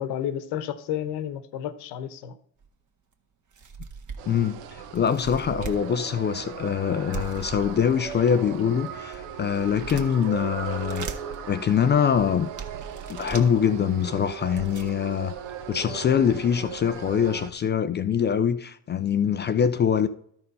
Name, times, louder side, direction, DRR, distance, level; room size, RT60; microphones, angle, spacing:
voice 1, 0.0-2.3, left 10 dB, 60° left, 1.1 m, -31 dB
sound 1, 2.6-2.7 3.1-3.2 3.5-4.4 4.9-5.8 7.1-8.2 8.8-10.3 10.7-11.4 12.0-12.1 12.6-13.5 14.2-14.3 14.4-14.9, right 5 dB, 40° right, 1.6 m, -38 dB
sound 2, 4.2-17.5, right 8 dB, 65° right, 1.2 m, -38 dB
voice 2, 4.3-11.1 11.5-12.5 13.1-15.3 15.7-20.1, left 8 dB, 25° left, 0.4 m, -24 dB
13.0 x 4.4 x 5.4 m
hypercardioid pair, 75°, 48 cm